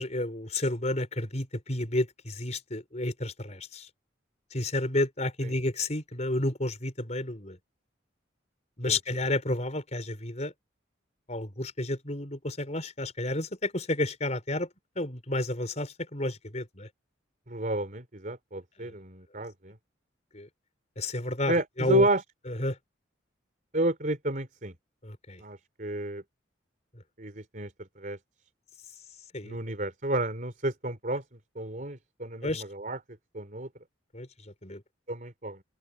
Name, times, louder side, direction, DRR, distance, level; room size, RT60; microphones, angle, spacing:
voice 1, 0.0-3.9 4.5-7.6 8.8-10.5 11.3-14.7 15.0-16.9 18.8-18.9 20.3-20.5 21.0-22.1 22.5-22.8 25.0-25.4 29.3-29.6 32.4-32.6 34.1-34.3 34.6-34.8, left 1 dB, 35° left, 5.3 m, -31 dB
voice 2, 17.5-19.8 21.5-22.2 23.7-24.8 25.4-26.2 27.2-28.2 29.4-31.2 31.6-33.0 33.3-33.7 35.1-35.6, right 2 dB, 45° right, 3.7 m, -31 dB
open air
head